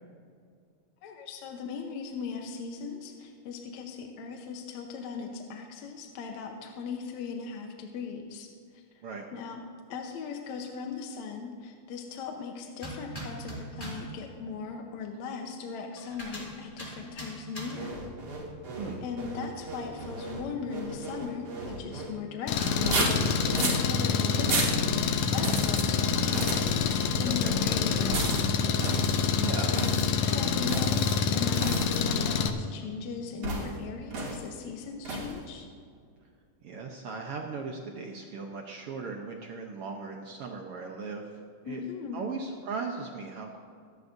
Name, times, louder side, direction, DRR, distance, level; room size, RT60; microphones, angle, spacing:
voice 1, 1.0-8.8 9.3-9.6 9.9-18.0 19.0-28.5 29.6-29.8 30.2-35.7 41.7-42.2, left 5 dB, 70° left, 2 dB, 2.1 m, -38 dB
sound 1, 12.8-14.2 16.0-18.0 22.6-23.7, right 1 dB, 15° left, 1.8 m, -40 dB
sound 2, 17.7-22.1 22.7-23.8 24.4-24.8 25.4-25.8 26.2-26.8 28.1-28.5 28.8-29.3 29.7-30.1 30.7-31.1 31.5-32.0 33.4-33.8 34.1-34.4 35.0-35.4, right 3 dB, 50° right, 3.1 m, -33 dB
Engine, 22.5-32.5, left 6 dB, 85° left, 1.3 m, -27 dB
voice 2, 27.2-27.6 29.4-29.7 36.6-41.2 41.6-41.8 42.1-43.6, right 4 dB, 75° right, 1 dB, 1.3 m, -37 dB
25.0 x 10.5 x 2.7 m, 2.2 s
omnidirectional pair, 3.7 m